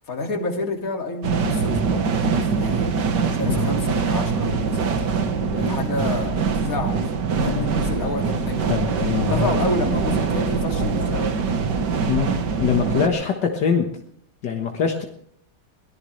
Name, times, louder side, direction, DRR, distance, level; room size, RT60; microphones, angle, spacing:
voice 1, 0.1-2.9 3.3-5.1 5.5-7.0 7.3-8.8 9.2-11.4, left 3 dB, 50° left, 3 dB, 2.7 m, -29 dB
sound 1, 1.2-13.1, right 5 dB, 75° right, 1.9 m, -23 dB
voice 2, 7.3-7.7 8.7-9.5 12.1-13.9 14.4-15.0, left 7 dB, 75° left, 3 dB, 2.0 m, -23 dB
22.5 x 18.0 x 3.3 m, 0.68 s
omnidirectional pair, 1.9 m